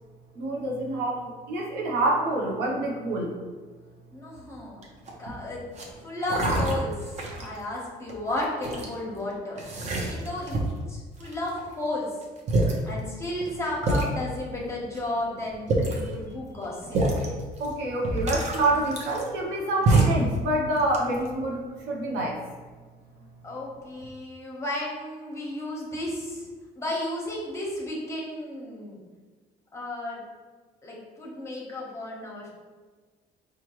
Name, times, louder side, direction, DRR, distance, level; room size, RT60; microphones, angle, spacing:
voice 1, 0.4-3.3 17.6-21.6 21.9-22.4, right 2 dB, 85° right, -1 dB, 0.8 m, -27 dB
voice 2, 4.1-4.8 5.2-5.7 6.0-9.6 10.0-10.6 10.9-12.1 12.8-17.0 23.4-26.5 26.8-29.0 29.7-30.2 30.8-32.5, left 1 dB, 15° left, -3 dB, 1.0 m, -33 dB
sound 1, 4.8-5.2 5.7-5.9 6.3-7.6 8.1-8.9 9.6-10.8 11.2-11.7 12.2-12.3 12.5-12.8 13.4-13.5 13.8-14.1 14.9-15.0 15.5-16.1 16.9-17.3 17.6-17.7 18.0-19.5 19.9-20.3 20.7-21.3, right 2 dB, 40° right, 0.8 m, -25 dB
4.5 x 2.4 x 3.0 m, 1.4 s
cardioid pair, 110°, 17 cm